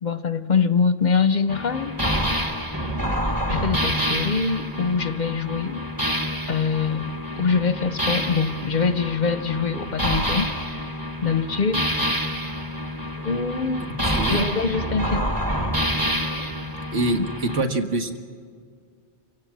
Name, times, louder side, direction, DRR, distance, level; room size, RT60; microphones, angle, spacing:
voice 1, 0.0-2.0 3.2-5.8 6.5-11.9 13.2-14.0 14.3-15.3 16.4-16.5 17.1-17.3, left 5 dB, 45° left, 12 dB, 0.7 m, -24 dB
sound 1, 1.5-17.6, equal, 20° right, 1.3 m, -27 dB
voice 2, 14.0-14.5 16.9-18.2, right 2 dB, 85° right, 4 dB, 2.0 m, -25 dB
28.5 x 16.5 x 7.5 m, 2.1 s
omnidirectional pair, 1.2 m